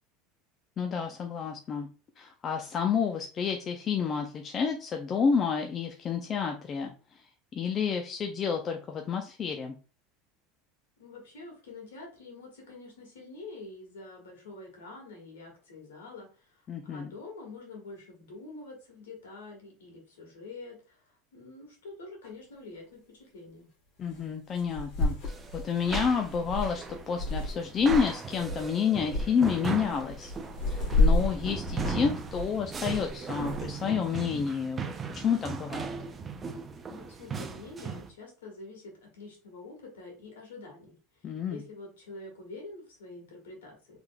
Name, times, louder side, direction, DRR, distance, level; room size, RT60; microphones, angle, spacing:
voice 1, 0.8-1.9 2.2-7.2 7.5-9.7 16.7-17.1 24.0-30.3 30.7-35.9 41.2-41.6, left 6 dB, 40° left, 4 dB, 0.5 m, -30 dB
voice 2, 11.0-23.7 36.9-44.0, left 3 dB, 85° left, 0 dB, 1.4 m, -46 dB
sound 1, 22.2-22.3 24.1-24.2 24.6-28.1 28.4-28.7 29.1-29.3 29.8-33.7, left 2 dB, 60° left, 1.5 m, -30 dB
sound 2, 25.3-38.1, right 5 dB, 30° right, 0.5 m, -38 dB
3.6 x 3.3 x 2.3 m, 0.35 s
hypercardioid pair, 90°, 0 cm